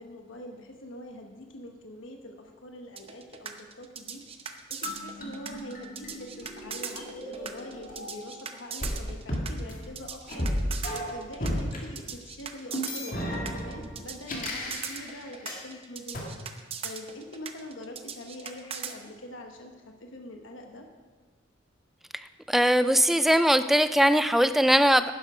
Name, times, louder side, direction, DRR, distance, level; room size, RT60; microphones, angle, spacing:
voice 1, 0.0-20.9, left 1 dB, 85° left, 3 dB, 1.3 m, -44 dB
sound 1, 3.0-18.9, right 7 dB, 30° right, 0.7 m, -39 dB
sound 2, 4.8-8.4 8.8-11.8 12.7-15.6 16.1-16.2, equal, 45° left, 2.1 m, -34 dB
voice 2, 22.5-25.1, equal, ahead, 11 dB, 0.3 m, -21 dB
11.5 x 11.0 x 5.0 m, 1.4 s
head